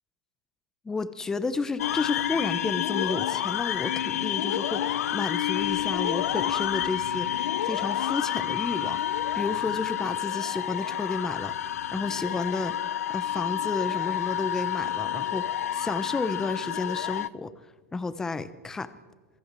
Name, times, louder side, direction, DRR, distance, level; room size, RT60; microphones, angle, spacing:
voice 1, 0.8-7.3 7.6-12.8 13.1-17.5 17.9-18.9, left 3 dB, 5° left, 13 dB, 0.8 m, -32 dB
sound 1, 1.8-17.3, left 11 dB, 65° left, 0.9 m, -29 dB
27.5 x 22.5 x 7.5 m, 1.3 s
supercardioid pair, 170°, 8 cm